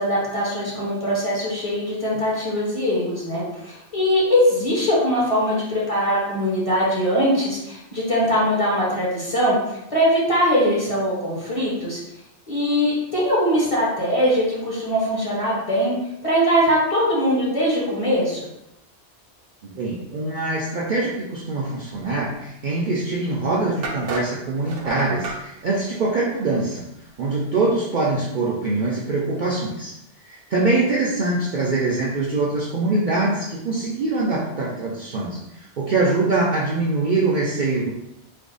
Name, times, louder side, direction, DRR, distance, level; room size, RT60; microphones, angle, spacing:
voice 1, 0.0-12.0 12.5-15.9 16.2-18.5, equal, 30° left, -6 dB, 1.0 m, -21 dB
voice 2, 19.6-26.8 27.2-29.9 30.2-37.9, right 3 dB, 55° right, -5 dB, 0.6 m, -23 dB
sound 1, 23.0-23.1 23.8-25.4, right 4 dB, 85° right, 0.9 m, -30 dB
3.4 x 2.0 x 3.8 m, 0.87 s
omnidirectional pair, 1.2 m